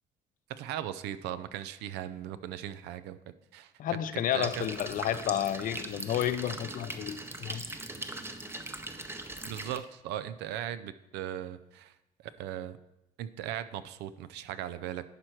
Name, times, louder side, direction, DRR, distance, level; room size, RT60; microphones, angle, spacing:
voice 1, 0.5-3.2 3.5-3.7 4.1-4.6 9.4-11.9 12.4-12.8 13.2-15.0, right 11 dB, 85° right, 14 dB, 0.5 m, -38 dB
voice 2, 3.8-7.6, left 11 dB, 55° left, 14 dB, 0.5 m, -31 dB
sound 1, 4.4-9.8, right 2 dB, 15° right, 0.6 m, -40 dB
11.0 x 4.5 x 4.5 m, 0.90 s
cardioid pair, 110°, 17 cm